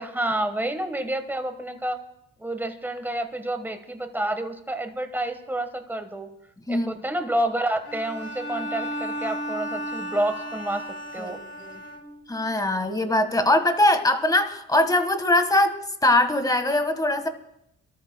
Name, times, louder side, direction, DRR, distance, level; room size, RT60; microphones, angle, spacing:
voice 1, 0.0-2.0 2.4-6.3 6.7-10.8 11.1-11.4, right 1 dB, 5° right, 8 dB, 1.3 m, -29 dB
Bowed string instrument, 7.8-12.4, equal, 50° left, 1.8 m, -34 dB
voice 2, 12.3-17.3, left 1 dB, 10° left, 8 dB, 1.5 m, -22 dB
29.0 x 13.0 x 2.2 m, 0.80 s
cardioid pair, 90°, 30 cm